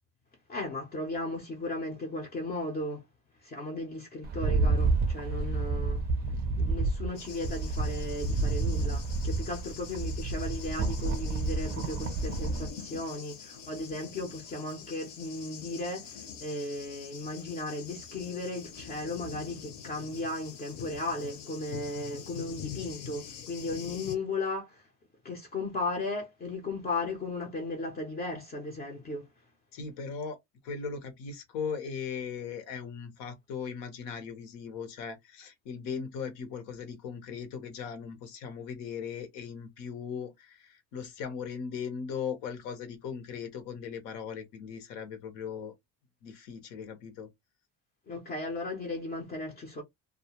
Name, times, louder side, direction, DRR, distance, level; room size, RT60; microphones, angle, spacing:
voice 1, 0.5-3.0 3.4-6.0 6.6-24.9 25.2-29.3 48.1-49.8, left 2 dB, 30° left, 0.5 m, -36 dB
Rattle, 4.2-12.7, right 3 dB, 30° right, 0.4 m, -30 dB
Thunder, 7.1-24.1, left 7 dB, 55° left, 0.8 m, -45 dB
voice 2, 29.7-30.4 30.6-45.7 46.2-47.3, left 6 dB, 85° left, 1.0 m, -38 dB
2.3 x 2.1 x 2.9 m
cardioid pair, 165°, 33 cm